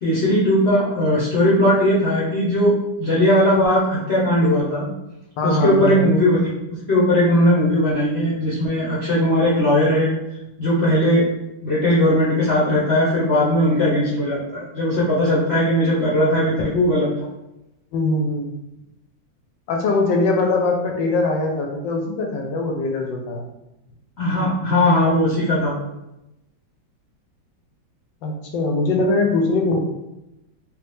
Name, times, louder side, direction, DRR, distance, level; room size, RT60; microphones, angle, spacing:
voice 1, 0.0-2.7 3.0-4.9 5.4-6.5 6.9-10.1 10.6-11.2 11.6-17.1 24.2-25.7, left 1 dB, 50° left, -9 dB, 0.8 m, -18 dB
voice 2, 5.4-6.1 17.9-18.5 19.7-23.4 28.2-29.8, left 2 dB, 80° left, 1 dB, 1.3 m, -21 dB
3.3 x 2.6 x 3.4 m, 0.93 s
omnidirectional pair, 2.1 m